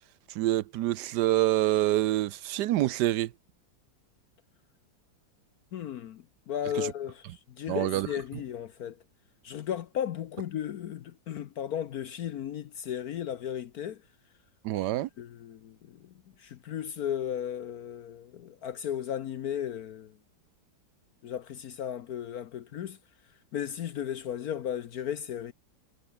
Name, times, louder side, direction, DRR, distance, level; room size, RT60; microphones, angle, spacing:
voice 1, 0.3-3.3 6.7-6.9 7.7-8.1 14.6-15.1, right 14 dB, 70° right, 1.1 m, -26 dB
voice 2, 5.7-9.0 9.4-14.0 14.8-14.9 15.2-16.1 16.4-20.2 21.2-23.0 23.5-25.5, left 9 dB, 60° left, 1.1 m, -35 dB
omnidirectional pair, 2.1 m